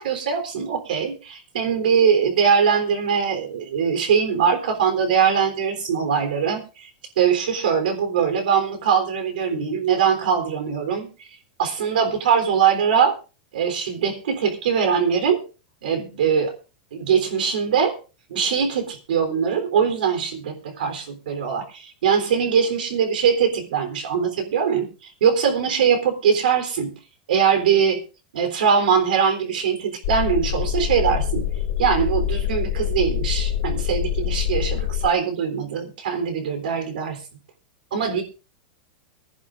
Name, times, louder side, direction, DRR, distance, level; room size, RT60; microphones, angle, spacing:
voice 1, 0.0-6.9 7.2-11.3 11.6-13.1 13.5-15.4 15.8-16.5 16.9-17.9 18.3-26.9 27.3-28.0 28.3-31.5 31.8-37.2 37.9-38.2, right 7 dB, 90° right, 7 dB, 3.6 m, -22 dB
sound 1, 30.0-35.1, left 10 dB, 60° left, 2.3 m, -25 dB
23.5 x 11.0 x 2.5 m, 0.32 s
supercardioid pair, 160°, 5 cm